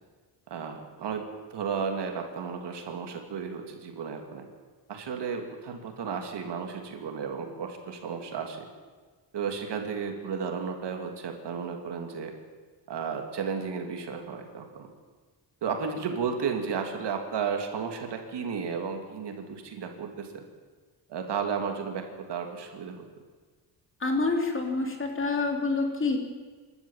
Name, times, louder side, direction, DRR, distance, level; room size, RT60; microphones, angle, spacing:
voice 1, 0.5-4.4 4.9-8.6 9.3-12.3 12.9-14.9 15.6-20.4 21.1-23.1, right 6 dB, 70° right, 4 dB, 3.0 m, -33 dB
voice 2, 24.0-26.2, left 3 dB, 30° left, 2 dB, 3.4 m, -27 dB
27.5 x 12.5 x 7.4 m, 1.4 s
cardioid pair, 125°, 42 cm